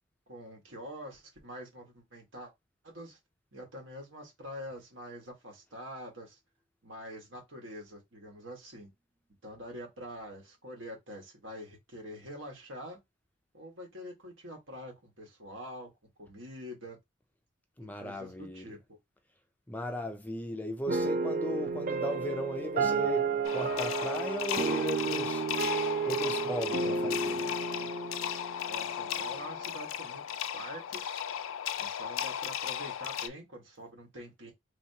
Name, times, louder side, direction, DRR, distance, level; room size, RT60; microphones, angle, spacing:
voice 1, 0.3-2.5 2.8-3.2 3.5-6.4 6.8-8.9 9.4-13.0 13.5-15.9 16.2-17.0 18.0-19.0 28.7-31.2 31.8-34.5, equal, 70° right, 1.6 m, -45 dB
voice 2, 17.8-18.8 19.7-25.5 26.1-27.5, equal, 10° left, 0.4 m, -37 dB
sound 1, 20.9-29.4, right 4 dB, 45° right, 0.5 m, -32 dB
sound 2, 23.4-33.3, left 10 dB, 90° left, 0.4 m, -36 dB
3.4 x 2.9 x 2.8 m
head